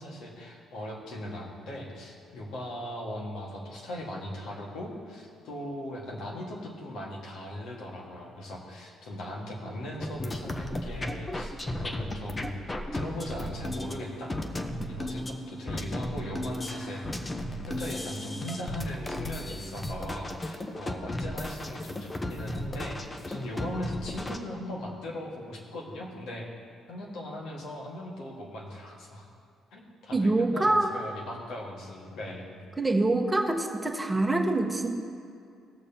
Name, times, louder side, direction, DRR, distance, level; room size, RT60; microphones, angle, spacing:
voice 1, 0.0-12.6 12.9-14.3 14.9-17.3 17.7-23.0 23.3-26.5 26.9-29.3 29.7-32.6, left 1 dB, 70° left, -2 dB, 1.7 m, -39 dB
sound 1, 10.0-24.4, left 1 dB, 25° left, 0.9 m, -35 dB
voice 2, 30.1-31.0 32.8-35.0, right 2 dB, 20° right, 3 dB, 1.3 m, -25 dB
18.0 x 6.7 x 2.9 m, 2.4 s
hypercardioid pair, 50°, 0 cm